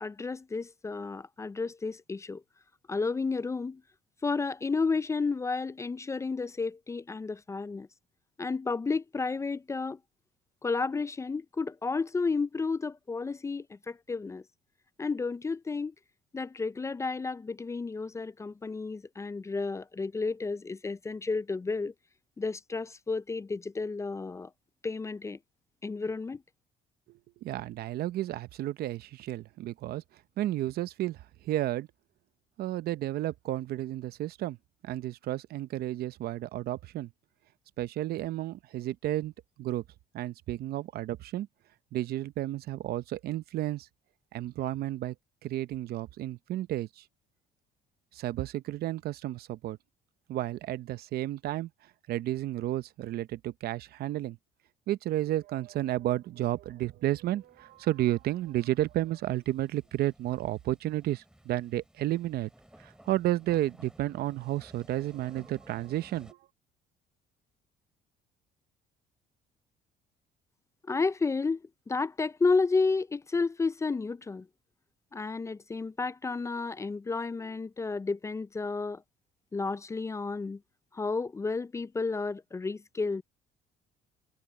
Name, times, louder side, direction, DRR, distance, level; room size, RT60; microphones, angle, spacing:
voice 1, 0.0-2.4 2.9-3.8 4.2-7.9 8.4-10.0 10.6-14.4 15.0-15.9 16.3-21.9 22.4-24.5 24.8-25.4 25.8-26.4 70.9-74.5 75.1-79.0 79.5-80.6 80.9-83.2, left 4 dB, 15° left, 0.4 m, -32 dB
voice 2, 27.1-30.0 30.4-31.9 32.6-34.6 34.8-37.1 37.8-39.3 39.6-39.8 40.1-41.5 41.9-43.9 44.3-45.1 45.4-47.1 48.1-49.8 50.3-54.4 54.9-62.5 62.8-66.4, right 14 dB, 65° right, 0.8 m, -32 dB
sound 1, 57.2-66.3, right 1 dB, 5° right, 2.4 m, -57 dB
cardioid pair, 110°, 17 cm